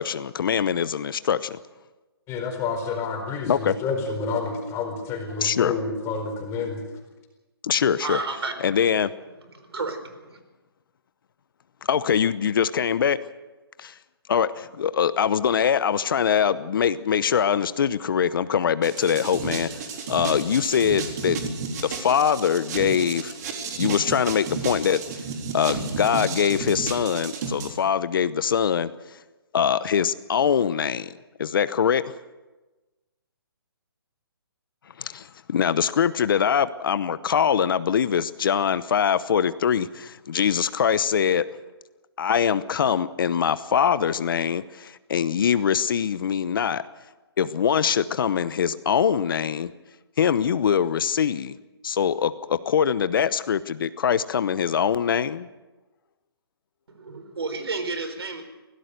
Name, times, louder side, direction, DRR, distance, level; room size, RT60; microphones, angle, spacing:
voice 1, 0.0-1.6 3.5-3.7 5.4-5.7 7.6-8.2 8.6-9.1 11.8-13.2 13.8-13.9 14.3-21.4 21.8-23.3 23.8-25.0 25.5-28.9 29.5-31.1 31.4-32.0 35.0-41.4 42.2-46.8 47.4-49.7 50.2-51.6 51.8-55.5, left 8 dB, 55° left, 15 dB, 0.9 m, -23 dB
voice 2, 2.3-6.8, left 4 dB, 20° left, 4 dB, 4.5 m, -29 dB
voice 3, 8.0-8.6 9.4-10.4 56.9-58.4, right 3 dB, 80° right, 9 dB, 4.5 m, -32 dB
sound 1, 18.8-27.7, right 5 dB, 40° right, 3.8 m, -32 dB
24.0 x 17.5 x 6.7 m, 1.1 s
hypercardioid pair, 150°, 13 cm